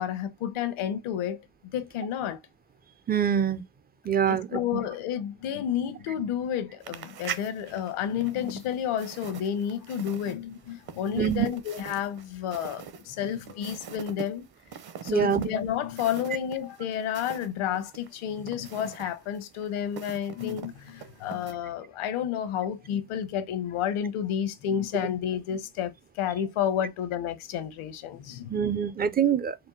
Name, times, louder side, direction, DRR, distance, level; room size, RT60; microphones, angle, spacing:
voice 1, 0.0-1.4 1.7-2.4 4.3-14.5 15.0-28.7, left 9 dB, 75° left, 1.0 m, -31 dB
voice 2, 3.1-3.6 4.1-4.6 11.2-11.5 15.1-15.5 28.5-29.6, right 8 dB, 20° right, 0.4 m, -24 dB
sound 1, 6.8-17.5 17.8-21.5, right 7 dB, 50° right, 0.9 m, -43 dB
4.4 x 2.2 x 3.8 m
cardioid pair, 85°, 49 cm